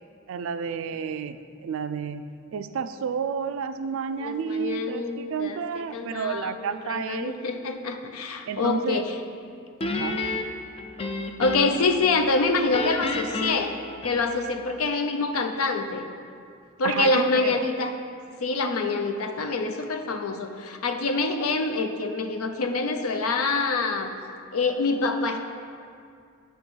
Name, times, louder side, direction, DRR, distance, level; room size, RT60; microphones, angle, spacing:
voice 1, 0.3-7.3 8.5-9.0 9.9-10.2 16.8-17.6, right 6 dB, 60° right, 10 dB, 0.3 m, -31 dB
voice 2, 4.2-9.2 11.4-16.1 16.8-18.0 18.4-24.1 24.5-25.4, left 3 dB, 75° left, 6 dB, 0.5 m, -26 dB
Guitar, 9.8-11.9 12.3-14.6, left 2 dB, 25° left, 0.3 m, -31 dB
8.7 x 3.0 x 6.1 m, 2.3 s
head